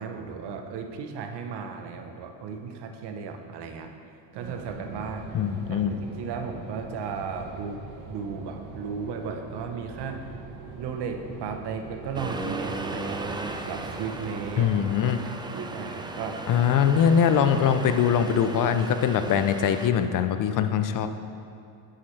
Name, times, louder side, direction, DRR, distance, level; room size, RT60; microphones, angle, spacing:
voice 1, 0.0-4.0 4.3-5.4 5.7-10.3 10.8-14.7 15.5-16.4 17.3-17.4, right 5 dB, 55° right, 6 dB, 1.0 m, -35 dB
sound 1, 4.3-14.8, right 2 dB, 75° right, 1.3 m, -42 dB
voice 2, 5.3-5.9 14.6-15.2 16.5-21.1, left 8 dB, 40° left, 10 dB, 0.6 m, -22 dB
Accelerating revving vroom, 12.1-19.9, right 2 dB, 10° right, 0.4 m, -36 dB
8.3 x 7.8 x 3.3 m, 2.4 s
supercardioid pair, 80°, 49 cm